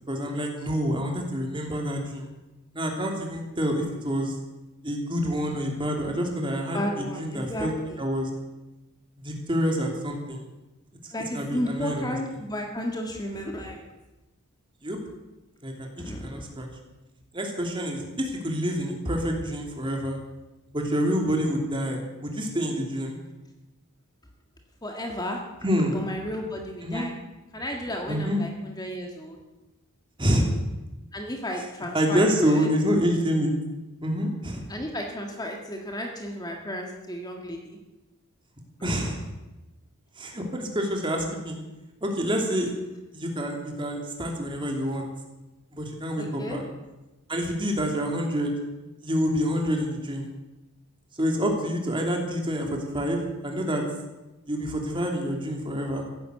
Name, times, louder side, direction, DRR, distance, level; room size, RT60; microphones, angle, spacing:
voice 1, 0.1-2.3 2.7-4.4 4.8-7.7 8.0-8.3 9.2-10.4 11.0-12.2 14.8-15.0 15.6-16.7 17.3-20.2 20.7-23.2 25.6-26.0 26.8-27.1 28.1-28.4 30.2-30.6 31.9-33.5 34.0-34.6 38.8-39.2 40.2-41.6 42.0-42.7 43.1-45.1 45.7-46.6 47.3-48.5 49.0-50.3 51.2-53.8 54.5-56.1, equal, 20° right, 2 dB, 2.9 m, -27 dB
voice 2, 6.7-8.0 11.1-13.8 16.0-16.2 24.8-25.4 25.9-27.1 27.5-29.4 31.1-32.7 34.7-37.8 46.2-46.6, equal, 20° left, 2 dB, 1.7 m, -33 dB
15.5 x 11.5 x 8.0 m, 1.1 s
head